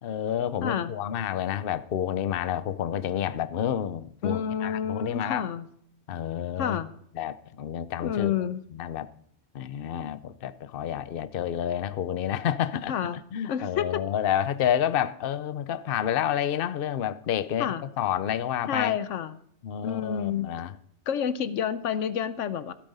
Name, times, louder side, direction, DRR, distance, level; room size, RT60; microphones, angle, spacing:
voice 1, 0.0-5.4 6.1-6.8 7.2-8.3 8.7-9.1 9.5-12.9 13.3-19.0 19.6-20.7, left 10 dB, 55° left, 0.8 m, -29 dB
voice 2, 0.6-0.9 4.2-5.6 6.6-6.9 8.0-8.6 12.9-13.2 13.5-14.0 17.6-17.8 18.7-19.4 19.8-20.5 21.1-22.7, left 8 dB, 80° left, 1.1 m, -29 dB
16.0 x 8.4 x 5.5 m
omnidirectional pair, 1.3 m